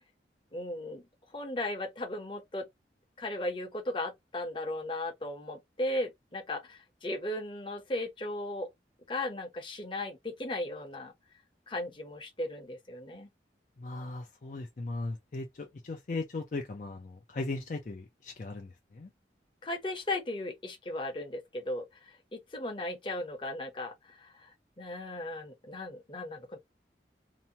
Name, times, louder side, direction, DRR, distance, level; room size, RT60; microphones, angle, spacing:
voice 1, 0.5-1.0 1.3-2.7 3.2-8.7 9.1-11.1 11.7-13.3 19.6-21.8 22.3-24.5 24.8-26.6, left 1 dB, 30° left, 0.8 m, -36 dB
voice 2, 13.8-19.1, left 3 dB, 45° left, 0.4 m, -38 dB
2.8 x 2.1 x 2.7 m
head